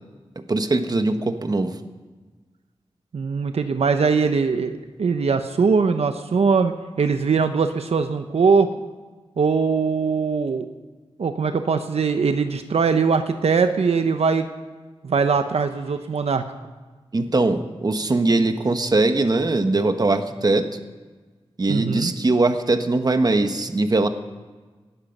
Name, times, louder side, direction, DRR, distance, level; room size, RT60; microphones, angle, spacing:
voice 1, 0.5-1.8 17.1-20.7 21.6-24.1, right 2 dB, 40° right, 8 dB, 1.2 m, -21 dB
voice 2, 3.1-8.7 9.4-10.7 11.2-14.5 15.0-16.4 21.7-22.1, right 5 dB, 80° right, 8 dB, 0.9 m, -21 dB
19.0 x 14.0 x 5.4 m, 1.3 s
wide cardioid pair, 90°, 11 cm